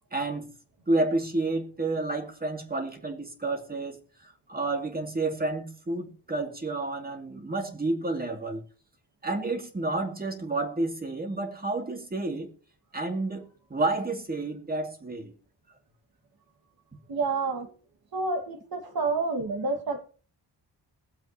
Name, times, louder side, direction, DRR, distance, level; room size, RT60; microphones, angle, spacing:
voice 1, 0.1-0.5 0.9-8.6 9.2-12.5 12.9-15.3, right 2 dB, 20° right, 2.4 m, -30 dB
voice 2, 17.1-17.7 18.1-20.1, right 3 dB, 60° right, 1.9 m, -29 dB
22.0 x 7.8 x 2.9 m
wide cardioid pair, 130°, 41 cm